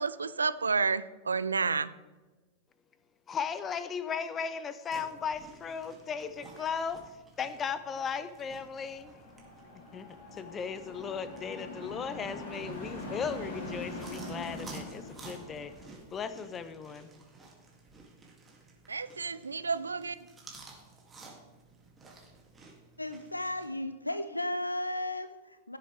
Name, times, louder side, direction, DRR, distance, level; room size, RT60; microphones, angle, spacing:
voice 1, 0.0-1.9 18.9-20.2, right 4 dB, 75° right, 16 dB, 0.4 m, -30 dB
voice 2, 3.3-7.0 7.4-9.1 9.9-10.1 10.3-15.7 16.1-17.1, left 6 dB, 25° left, 13 dB, 0.7 m, -36 dB
sound 1, 4.9-23.7, right 3 dB, 15° right, 2.5 m, -54 dB
sound 2, 8.6-16.0, left 1 dB, 50° left, 3.1 m, -43 dB
voice 3, 23.0-25.8, left 1 dB, 85° left, 11 dB, 0.4 m, -34 dB
16.0 x 7.4 x 3.5 m, 1.2 s
figure-of-eight pair, 90°, 0 cm